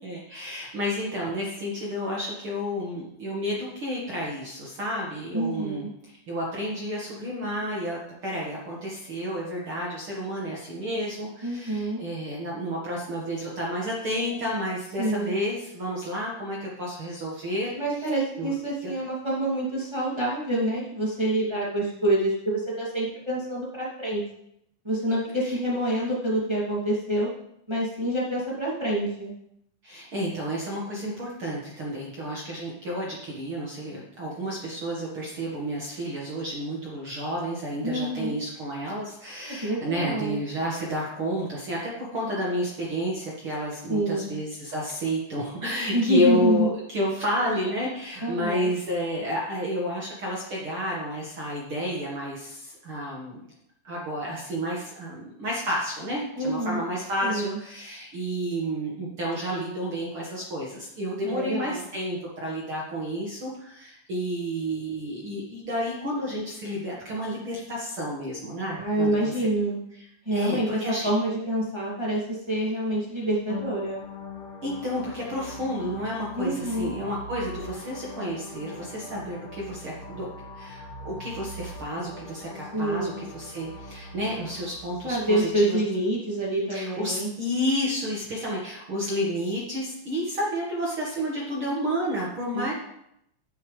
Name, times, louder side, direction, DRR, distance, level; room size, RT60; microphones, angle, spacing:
voice 1, 0.0-17.7 18.4-18.5 18.8-18.9 25.4-25.5 29.8-53.4 53.8-69.3 70.3-71.1 74.6-80.3 80.5-85.8 86.7-92.7, equal, 65° right, -4 dB, 1.3 m, -31 dB
voice 2, 5.3-5.9 11.4-12.0 15.0-15.3 17.7-24.2 24.8-27.3 27.7-29.3 37.8-38.3 39.4-40.4 43.9-44.3 45.9-46.7 48.2-48.7 56.4-56.8 57.2-57.6 61.2-61.9 68.7-69.8 70.2-74.0 76.3-76.9 82.7-83.2 85.0-87.3 92.5-92.7, right 1 dB, 20° right, -6 dB, 0.6 m, -27 dB
sound 1, 73.5-85.4, left 2 dB, 45° left, 2.8 m, -42 dB
10.5 x 9.8 x 3.3 m, 0.77 s
omnidirectional pair, 5.3 m